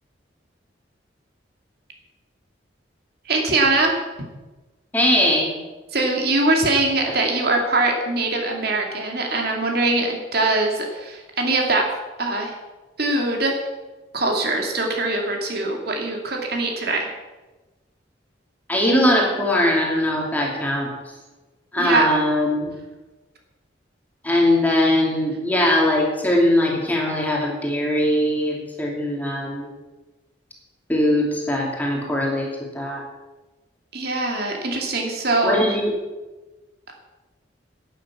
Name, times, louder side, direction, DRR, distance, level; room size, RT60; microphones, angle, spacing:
voice 1, 3.3-4.0 5.9-11.9 12.2-12.5 13.0-13.6 14.1-17.1 21.8-22.1 33.9-35.6, right 2 dB, 55° right, 1 dB, 2.3 m, -22 dB
voice 2, 4.9-5.5 7.0-7.1 18.7-20.9 21.7-22.7 24.2-29.7 30.9-33.0 35.4-36.0, left 1 dB, 10° left, -2 dB, 2.7 m, -21 dB
11.5 x 9.5 x 7.2 m, 1.2 s
head